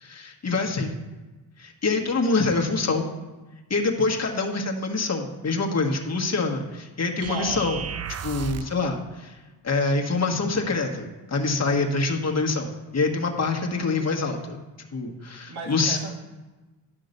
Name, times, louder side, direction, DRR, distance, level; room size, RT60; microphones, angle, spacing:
voice 1, 0.0-0.9 1.6-3.0 3.7-7.8 8.2-9.4 9.6-14.6 14.9-16.0, left 3 dB, 35° left, 2 dB, 1.5 m, -25 dB
sound 1, 7.2-8.8, right 8 dB, 35° right, 0.5 m, -34 dB
voice 2, 7.3-7.7 15.5-16.2, right 3 dB, 60° right, 2 dB, 1.7 m, -35 dB
11.0 x 3.7 x 6.6 m, 1.2 s
cardioid pair, 70°, 44 cm